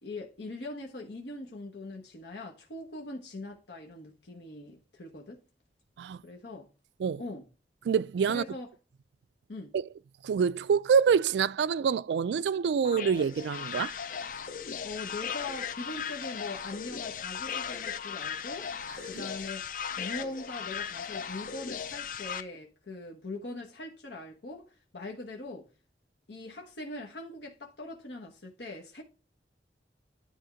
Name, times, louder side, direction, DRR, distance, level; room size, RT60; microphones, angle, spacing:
voice 1, 0.0-5.4 6.2-6.7 7.2-7.5 8.3-8.7 9.5-9.7 14.8-18.7 19.1-25.6 26.3-29.0, left 2 dB, 80° left, 1.2 m, -41 dB
voice 2, 7.9-8.4 9.7-9.8 10.2-14.0 19.1-19.2, right 6 dB, 80° right, 0.3 m, -26 dB
sound 1, 12.8-22.4, left 7 dB, 50° left, 0.5 m, -37 dB
10.5 x 3.5 x 5.0 m
head